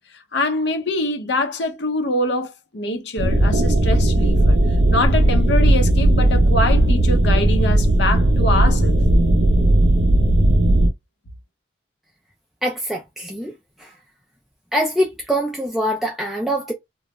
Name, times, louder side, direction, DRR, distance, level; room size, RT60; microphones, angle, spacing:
voice 1, 0.3-4.6 4.9-9.0, left 2 dB, 60° left, 0.7 m, -24 dB
sound 1, 3.2-10.9, right 1 dB, 60° right, 0.5 m, -16 dB
voice 2, 12.6-13.5 13.8-13.9 14.7-16.7, equal, ahead, 0.3 m, -23 dB
2.2 x 2.0 x 3.0 m
head